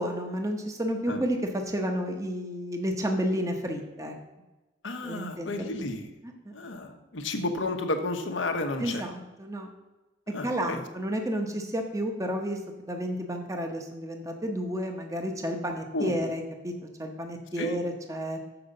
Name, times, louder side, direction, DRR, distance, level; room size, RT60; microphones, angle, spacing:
voice 1, 0.0-4.1 5.0-5.6 6.4-6.5 8.8-9.7 10.4-16.7 17.0-18.4, equal, 15° right, 4 dB, 0.8 m, -31 dB
voice 2, 4.8-6.1 6.5-9.0 10.3-10.8 15.9-16.2 17.6-17.8, left 2 dB, 85° left, 5 dB, 1.0 m, -32 dB
7.0 x 5.1 x 6.6 m, 1.1 s
head